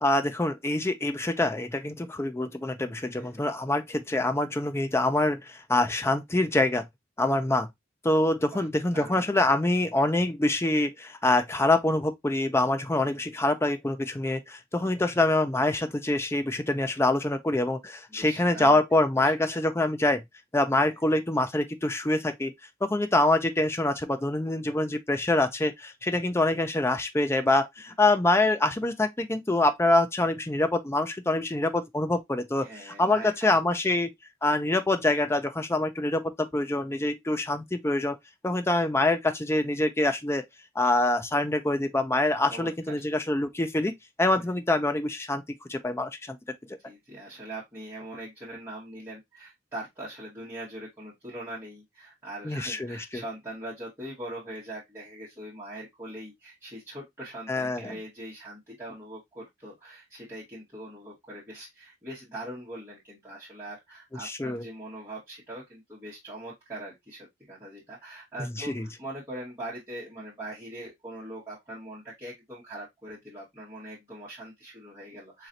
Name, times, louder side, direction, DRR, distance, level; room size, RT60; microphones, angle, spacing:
voice 1, 0.0-6.9 7.2-7.7 8.0-20.2 20.5-22.5 22.8-34.1 34.4-38.2 38.4-40.4 40.8-43.9 44.2-45.4 45.7-46.4 52.4-53.2 57.5-58.0 64.2-64.6 68.6-68.9, left 2 dB, 15° left, 0.4 m, -25 dB
voice 2, 8.9-9.5 18.1-18.8 19.2-19.6 20.8-21.0 32.6-33.3 42.5-43.0 44.3-44.4 46.8-75.5, right 1 dB, 15° right, 1.6 m, -42 dB
4.2 x 3.1 x 2.5 m
head